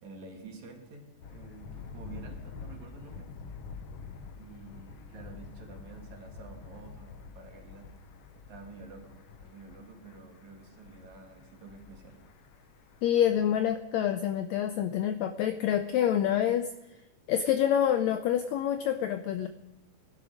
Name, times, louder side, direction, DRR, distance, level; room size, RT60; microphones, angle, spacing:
voice 1, 0.0-3.3 4.3-7.9 8.4-12.2, right 4 dB, 65° right, 2 dB, 3.0 m, -49 dB
Thunder, 1.2-13.7, left 5 dB, 65° left, 1.6 m, -47 dB
voice 2, 13.0-17.0 17.3-19.5, left 10 dB, 85° left, 9 dB, 1.6 m, -27 dB
16.0 x 11.5 x 5.1 m, 0.98 s
omnidirectional pair, 3.7 m